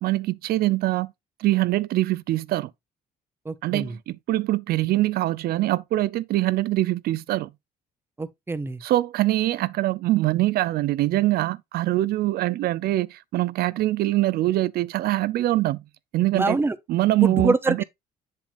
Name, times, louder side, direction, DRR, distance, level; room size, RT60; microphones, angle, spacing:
voice 1, 0.0-1.1 1.4-2.7 3.6-7.5 8.8-15.8 16.1-16.6 16.9-17.8, right 16 dB, 65° right, 0.5 m, -23 dB
voice 2, 3.4-4.0 8.2-8.8 16.3-16.8 17.2-17.8, right 3 dB, 15° right, 0.8 m, -25 dB
7.4 x 7.0 x 2.4 m
cardioid pair, 110°, 17 cm